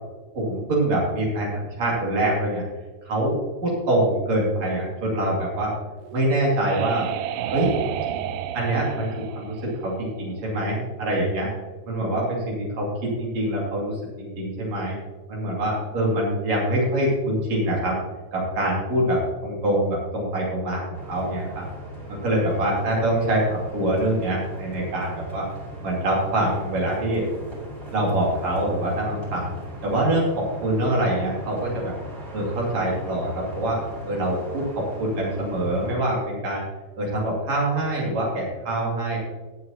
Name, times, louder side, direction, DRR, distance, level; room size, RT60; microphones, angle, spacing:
voice 1, 0.4-2.6 3.0-5.7 6.1-7.1 7.5-7.7 8.5-11.5 11.9-13.9 14.2-15.0 15.3-18.0 18.3-21.7 22.1-25.5 25.8-27.2 27.9-29.6 29.8-31.9 32.3-33.8 34.0-36.6 37.0-39.2, right 1 dB, 65° right, -4 dB, 3.7 m, -24 dB
sound 1, 6.0-10.6, right 11 dB, 85° right, 2.0 m, -31 dB
sound 2, 20.9-35.9, equal, 25° right, 3.5 m, -39 dB
19.0 x 7.6 x 2.9 m, 1.3 s
omnidirectional pair, 3.4 m